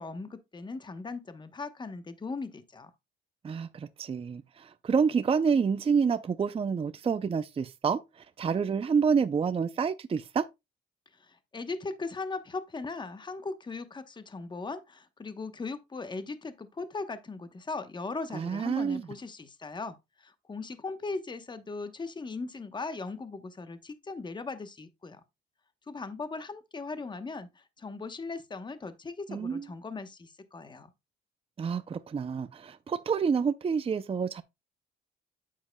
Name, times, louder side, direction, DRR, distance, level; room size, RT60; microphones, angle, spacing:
voice 1, 0.0-2.9 11.2-25.2 25.9-30.9, left 3 dB, 20° left, 1.0 m, -38 dB
voice 2, 3.4-10.5 18.3-19.1 29.3-29.7 31.6-34.4, right 6 dB, 30° right, 0.5 m, -28 dB
8.6 x 7.5 x 2.2 m
cardioid pair, 90°, 20 cm